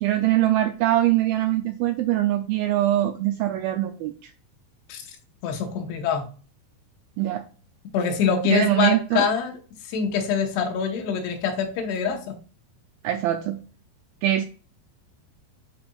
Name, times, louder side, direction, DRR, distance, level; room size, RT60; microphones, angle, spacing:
voice 1, 0.0-4.3 7.2-7.5 8.5-9.3 13.0-13.6 14.2-14.4, right 13 dB, 85° right, 7 dB, 2.1 m, -22 dB
voice 2, 5.4-6.3 7.9-9.6 9.8-12.4, left 6 dB, 80° left, 4 dB, 3.1 m, -25 dB
11.0 x 4.2 x 2.3 m, 0.38 s
omnidirectional pair, 4.7 m